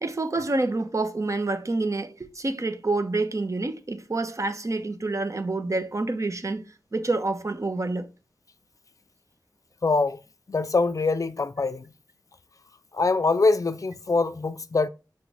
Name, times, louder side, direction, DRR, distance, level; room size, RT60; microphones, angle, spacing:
voice 1, 0.0-6.6 6.9-8.1, right 2 dB, 45° right, 1.1 m, -27 dB
voice 2, 9.8-10.2 10.5-11.8 12.9-14.9, left 3 dB, 50° left, 0.5 m, -23 dB
6.3 x 4.9 x 3.5 m
wide cardioid pair, 80°, 7 cm